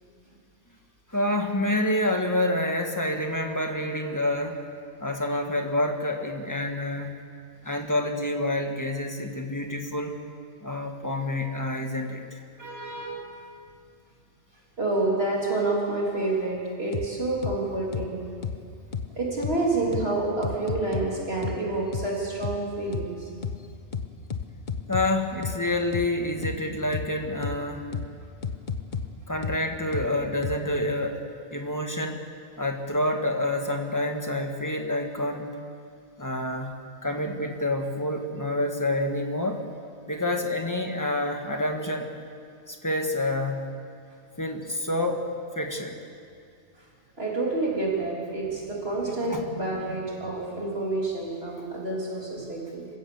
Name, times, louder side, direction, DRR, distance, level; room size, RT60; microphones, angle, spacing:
voice 1, 1.1-4.6 5.0-7.1 7.6-10.2 10.6-12.4 24.9-27.9 29.3-31.2 31.5-32.2 32.6-35.5 36.2-36.7 37.0-39.6 40.1-42.1 42.7-43.6 44.4-45.2 45.6-46.0 49.3-49.4, left 1 dB, 15° left, 3 dB, 1.7 m, -28 dB
voice 2, 12.6-13.3 14.8-18.2 19.2-23.3 46.8-46.9 47.2-52.9, right 2 dB, 55° right, -4 dB, 3.8 m, -28 dB
sound 1, 16.9-17.1 17.4-17.6 17.9-18.1 18.4-18.6 18.9-19.1 19.4-19.6 19.9-20.1 20.4-21.1 21.4-21.6 21.9-22.1 22.4-22.6 22.9-23.1 23.4-23.6 23.9-25.1 25.4-25.6 25.9-26.1 26.4-26.6 26.9-27.1 27.4-27.6 27.9-28.1 28.4-29.1 29.4-29.6 29.9-30.1 30.4-30.6, left 6 dB, 45° left, 1.1 m, -31 dB
27.0 x 16.0 x 7.1 m, 2.3 s
omnidirectional pair, 1.2 m